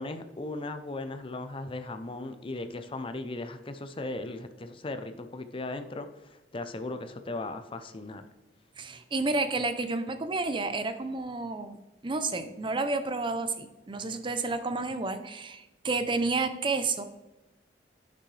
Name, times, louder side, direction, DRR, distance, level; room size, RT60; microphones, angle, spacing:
voice 1, 0.0-8.3, left 2 dB, 30° left, 9 dB, 0.6 m, -37 dB
voice 2, 8.8-11.8 12.0-17.0, right 3 dB, 30° right, 9 dB, 0.5 m, -30 dB
9.8 x 6.1 x 3.2 m, 1.0 s
head